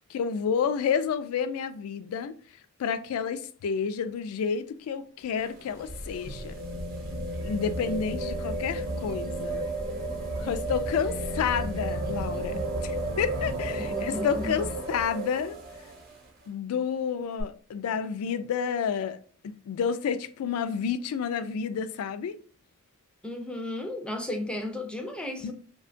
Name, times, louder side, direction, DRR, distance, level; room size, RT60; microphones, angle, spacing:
voice 1, 0.1-2.3 2.8-6.5 7.4-9.7 10.4-15.6 16.5-19.2 19.4-22.3 25.4-25.5, left 7 dB, 90° left, 0.3 m, -30 dB
sound 1, 5.2-16.2 17.4-17.5, right 2 dB, 45° right, 0.7 m, -33 dB
voice 2, 13.8-14.7 23.2-25.5, left 1 dB, 5° left, 0.4 m, -34 dB
2.8 x 2.2 x 2.5 m
head